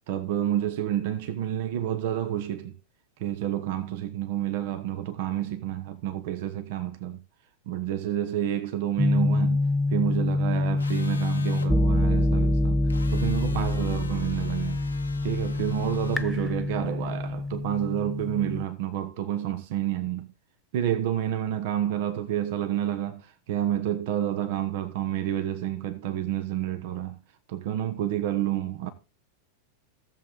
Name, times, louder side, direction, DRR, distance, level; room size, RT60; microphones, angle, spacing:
voice 1, 0.1-2.8 3.2-7.2 7.7-9.6 9.9-14.8 15.2-20.3 20.7-27.2 27.5-28.9, right 11 dB, 50° right, 1.1 m, -29 dB
sound 1, 9.0-18.6, left 2 dB, 5° left, 0.5 m, -26 dB
sound 2, 10.8-11.7 12.9-16.3, left 5 dB, 75° left, 1.1 m, -45 dB
14.5 x 7.6 x 3.6 m
figure-of-eight pair, 90°, 0 cm